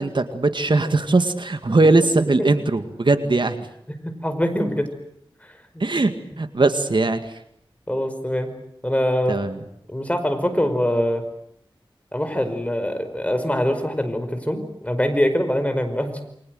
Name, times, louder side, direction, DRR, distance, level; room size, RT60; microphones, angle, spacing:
voice 1, 0.0-3.7 5.8-7.2 9.3-9.6, right 2 dB, 60° right, 9 dB, 2.1 m, -20 dB
voice 2, 4.0-4.9 7.9-8.5 8.8-9.4 9.9-11.2 12.1-16.2, equal, 15° left, 7 dB, 5.1 m, -23 dB
29.0 x 24.0 x 7.9 m, 0.74 s
wide cardioid pair, 60°, 9 cm